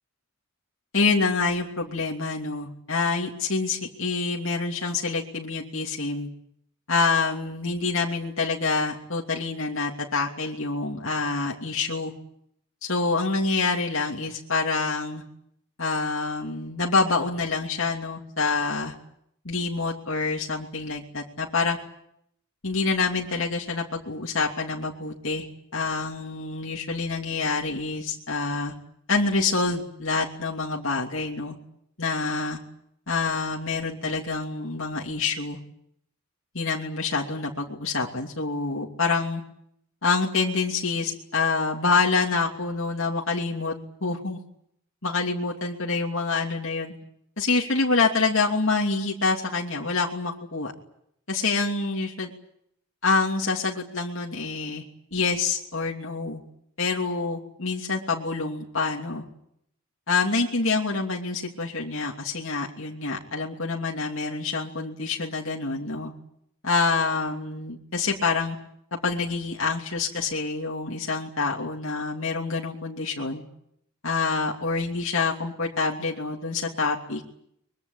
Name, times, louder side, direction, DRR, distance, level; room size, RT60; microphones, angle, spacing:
voice 1, 0.9-6.3 6.9-12.1 12.8-15.2 15.8-18.9 19.4-21.8 22.6-25.5 25.7-28.8 29.1-31.6 32.0-32.6 33.1-35.6 36.5-39.4 40.0-43.7 44.0-44.4 45.0-46.9 47.4-50.7 51.3-52.3 53.0-54.8 55.1-56.4 56.8-59.2 60.1-66.1 66.6-68.6 68.9-73.4 74.0-77.2, left 4 dB, 60° left, -1 dB, 2.9 m, -26 dB
24.0 x 22.5 x 8.9 m, 0.72 s
head